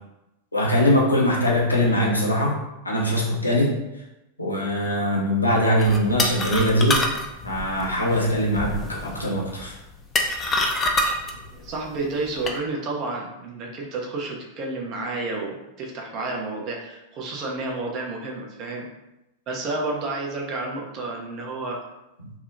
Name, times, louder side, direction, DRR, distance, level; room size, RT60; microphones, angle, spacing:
voice 1, 0.5-2.6 2.8-3.7 4.4-7.0 7.4-9.7, equal, 80° left, -3 dB, 0.5 m, -22 dB
sound 1, 5.8-12.6, left 2 dB, 20° left, 0.3 m, -27 dB
voice 2, 11.5-18.9 19.5-21.8, right 3 dB, 40° right, -1 dB, 0.5 m, -30 dB
2.7 x 2.0 x 2.5 m, 0.95 s
figure-of-eight pair, 90°, 0 cm